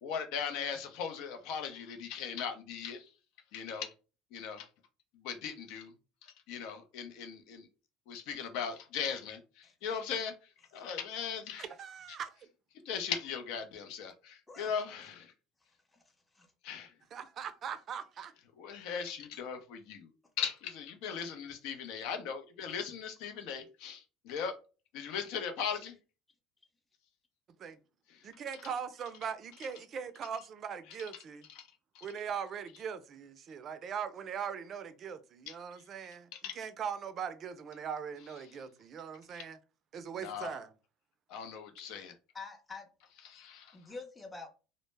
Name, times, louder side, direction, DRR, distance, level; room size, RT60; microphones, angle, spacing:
voice 1, 0.0-3.1 3.5-3.9 4.3-4.7 5.1-5.9 6.2-7.7 8.1-10.3 10.7-11.7 12.9-15.3 16.6-16.9 18.6-20.1 20.4-24.5 24.9-26.0 28.1-28.2 31.5-31.7 31.9-32.1 35.5-35.6 36.3-36.5 39.3-39.5 40.2-40.6 41.3-42.1 43.2-43.8, left 7 dB, 70° left, 0.5 m, -38 dB
voice 2, 11.6-12.4 17.1-18.3 27.6-27.8 28.2-31.5 32.0-36.3 36.6-39.6 39.9-40.7, right 7 dB, 45° right, 0.4 m, -40 dB
voice 3, 42.3-42.9 43.7-44.5, left 4 dB, 15° left, 0.6 m, -46 dB
2.0 x 2.0 x 3.2 m
supercardioid pair, 100°, 0 cm